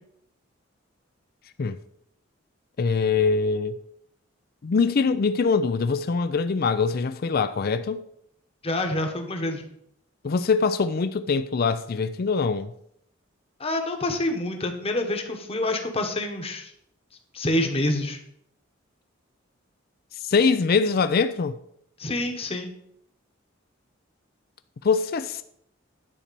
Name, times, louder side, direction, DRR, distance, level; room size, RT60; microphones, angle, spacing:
voice 1, 2.8-3.8 4.6-8.0 10.2-12.7 20.1-21.6 24.8-25.4, left 5 dB, 50° left, 0.4 m, -23 dB
voice 2, 8.6-9.6 13.6-16.7 17.3-18.2 22.0-22.7, left 1 dB, 30° left, 1.2 m, -27 dB
10.0 x 4.3 x 6.8 m
head